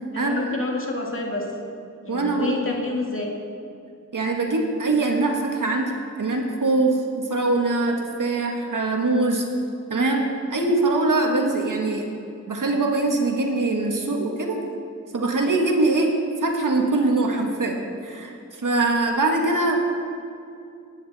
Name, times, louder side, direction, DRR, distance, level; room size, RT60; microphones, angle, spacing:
voice 1, 0.1-1.5 2.0-3.3, left 3 dB, 40° left, -1 dB, 2.3 m, -28 dB
voice 2, 2.1-2.6 4.1-5.9 6.2-9.4 9.9-12.1 12.5-14.6 15.1-16.1 16.4-17.8 18.0-19.8, right 2 dB, 75° right, 1 dB, 1.8 m, -22 dB
19.5 x 9.6 x 4.3 m, 2.5 s
wide cardioid pair, 70°, 32 cm